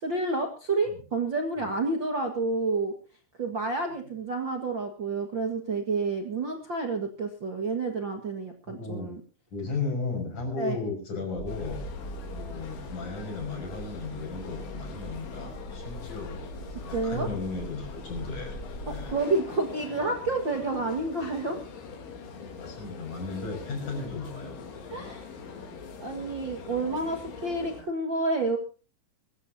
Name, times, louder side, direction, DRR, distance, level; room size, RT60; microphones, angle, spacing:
voice 1, 0.0-2.9 3.4-9.2 10.6-10.8 16.9-17.3 18.9-21.6 24.9-25.3 26.0-28.6, right 3 dB, 75° right, 3 dB, 1.0 m, -29 dB
voice 2, 8.7-9.1 9.5-11.8 12.3-16.4 16.9-18.6 18.8-19.2 22.4-24.6, left 3 dB, 40° left, 2 dB, 7.3 m, -35 dB
sound 1, 11.4-19.1, equal, 20° left, 4.8 m, -41 dB
sound 2, 11.5-27.8, left 5 dB, 80° left, 5.5 m, -43 dB
24.0 x 15.0 x 2.8 m, 0.35 s
omnidirectional pair, 5.3 m